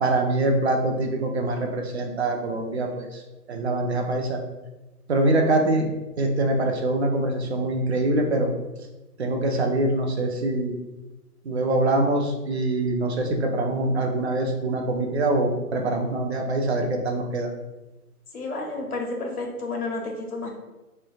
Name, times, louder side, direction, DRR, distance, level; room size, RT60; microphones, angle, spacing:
voice 1, 0.0-3.2 3.5-4.4 5.1-5.9 6.2-8.5 9.2-10.8 11.4-17.5, right 2 dB, 45° right, 2 dB, 0.6 m, -24 dB
voice 2, 18.3-20.5, left 2 dB, 70° left, 1 dB, 1.3 m, -31 dB
5.0 x 3.2 x 2.4 m, 1.1 s
hypercardioid pair, 155°, 46 cm